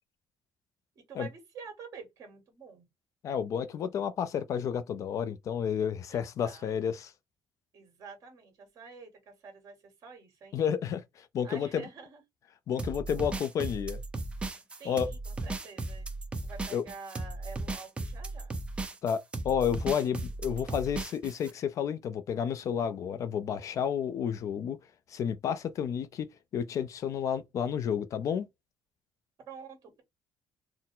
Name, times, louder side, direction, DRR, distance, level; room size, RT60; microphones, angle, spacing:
voice 1, 1.1-2.9 6.1-6.9 7.7-10.6 11.4-12.2 14.8-16.1 16.4-18.5 29.5-30.0, right 5 dB, 45° right, 1.9 m, -48 dB
voice 2, 3.2-7.1 10.5-11.8 12.7-14.0 14.9-15.1 16.7-16.8 19.0-24.8 25.1-26.3 26.5-28.5, left 8 dB, 45° left, 0.4 m, -31 dB
sound 1, 12.8-21.5, right 2 dB, 15° right, 0.5 m, -36 dB
4.3 x 2.0 x 3.7 m
cardioid pair, 175°, 8 cm